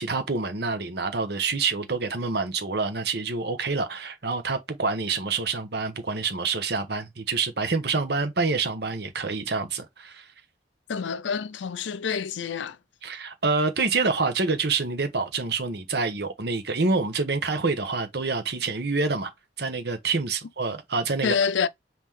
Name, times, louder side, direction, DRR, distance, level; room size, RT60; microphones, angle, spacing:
voice 1, 0.0-10.3 13.0-19.3 19.6-21.4, right 4 dB, 60° right, 1.0 m, -27 dB
voice 2, 10.9-12.8 21.2-21.7, left 6 dB, 80° left, 0.5 m, -27 dB
5.6 x 2.9 x 3.2 m
head